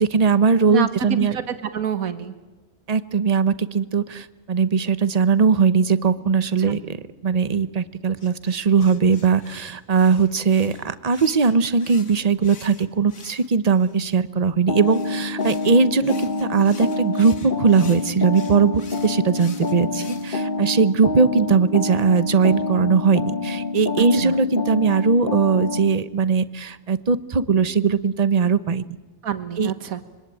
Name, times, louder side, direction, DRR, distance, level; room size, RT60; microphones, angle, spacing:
voice 1, 0.0-1.4 2.9-7.0 7.2-28.8 29.6-29.7, right 5 dB, 35° right, 14 dB, 0.9 m, -20 dB
voice 2, 0.7-2.3 6.6-6.7 24.0-24.3 29.2-30.0, right 8 dB, 85° right, 10 dB, 1.7 m, -28 dB
sound 1, 8.2-14.0 14.8-20.4, left 5 dB, 75° left, 2.3 m, -46 dB
sound 2, 14.7-26.0, left 3 dB, 40° left, 1.3 m, -27 dB
25.5 x 23.0 x 9.2 m, 1.2 s
omnidirectional pair, 1.4 m